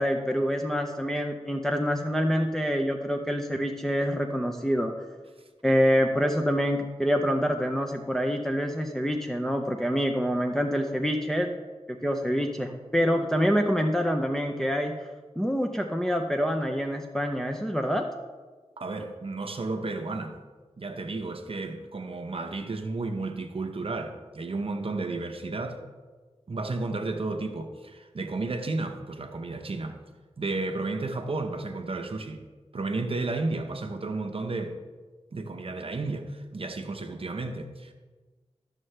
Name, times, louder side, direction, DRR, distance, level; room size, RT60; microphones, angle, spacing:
voice 1, 0.0-4.9 5.6-11.5 12.0-14.9 15.4-18.1, equal, 5° left, 3 dB, 0.6 m, -26 dB
voice 2, 18.8-20.4 20.8-25.8 26.5-30.0 30.4-32.4 32.7-34.8 35.3-37.9, right 3 dB, 55° right, 5 dB, 0.7 m, -32 dB
12.5 x 6.5 x 3.3 m, 1.4 s
wide cardioid pair, 90°, 11 cm